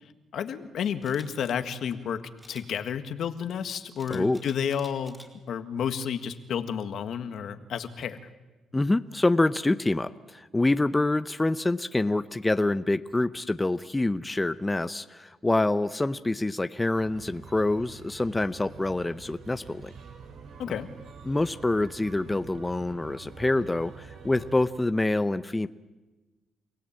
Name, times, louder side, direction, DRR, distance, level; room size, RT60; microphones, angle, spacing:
voice 1, 0.3-2.2 2.5-5.2 5.5-8.2 20.6-20.9, left 8 dB, 70° left, 9 dB, 1.7 m, -31 dB
Camera, 1.0-1.3 2.4-2.7 4.0-5.3 5.8-6.0, equal, 5° right, 4.4 m, -50 dB
voice 2, 4.1-4.4 8.7-19.9 21.3-25.7, left 2 dB, 15° left, 11 dB, 0.8 m, -26 dB
sound 1, 16.9-24.7, right 5 dB, 75° right, 5.6 m, -46 dB
29.5 x 17.5 x 8.8 m, 1.2 s
cardioid pair, 90°, 0 cm